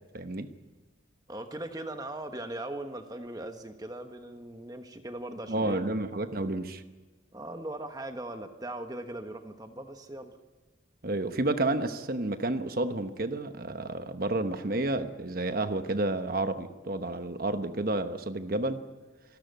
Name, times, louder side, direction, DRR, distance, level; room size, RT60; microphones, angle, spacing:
voice 1, 0.1-0.5 5.5-6.8 11.0-18.8, right 2 dB, 50° right, 9 dB, 1.1 m, -30 dB
voice 2, 1.3-6.0 7.3-10.3, right 1 dB, 20° right, 7 dB, 1.3 m, -39 dB
26.5 x 12.5 x 9.3 m, 1.3 s
head